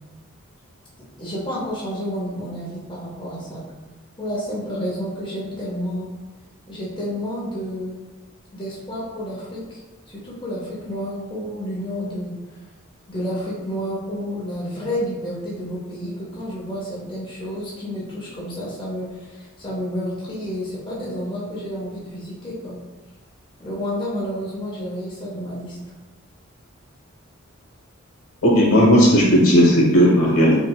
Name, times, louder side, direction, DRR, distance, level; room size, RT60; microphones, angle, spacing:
voice 1, 1.2-3.6 4.2-6.1 6.7-7.9 8.5-9.8 10.1-12.6 13.1-22.8 23.6-25.8, equal, 20° left, -7 dB, 0.6 m, -30 dB
voice 2, 28.4-30.6, equal, 80° left, -4 dB, 1.0 m, -14 dB
3.6 x 2.2 x 2.2 m, 1.1 s
head